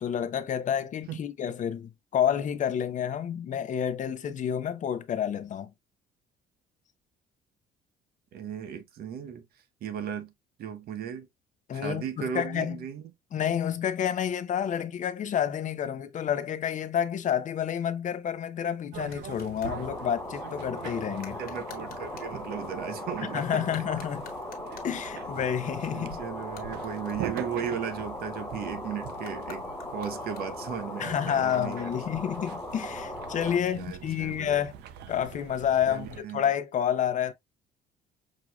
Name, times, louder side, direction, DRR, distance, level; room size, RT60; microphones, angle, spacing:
voice 1, 0.0-5.7 11.7-12.8 13.3-21.4 23.3-24.2 24.8-26.2 31.0-34.7 35.1-36.1 36.3-37.3, left 9 dB, 50° left, 0.7 m, -29 dB
voice 2, 8.3-9.5 9.8-10.3 10.6-11.3 11.7-13.0 21.4-23.7 24.7-24.8 25.9-29.7 29.9-31.9 33.5-34.6 35.9-36.4, right 8 dB, 65° right, 0.9 m, -36 dB
sound 1, 18.9-36.2, right 11 dB, 80° right, 0.6 m, -43 dB
sound 2, 19.0-19.8 21.2-22.4 23.6-25.0 26.4-28.2 29.2-30.8, left 7 dB, 65° left, 1.4 m, -52 dB
sound 3, 19.7-33.6, left 2 dB, 10° left, 0.8 m, -38 dB
6.2 x 2.8 x 2.3 m
cardioid pair, 110°, 17 cm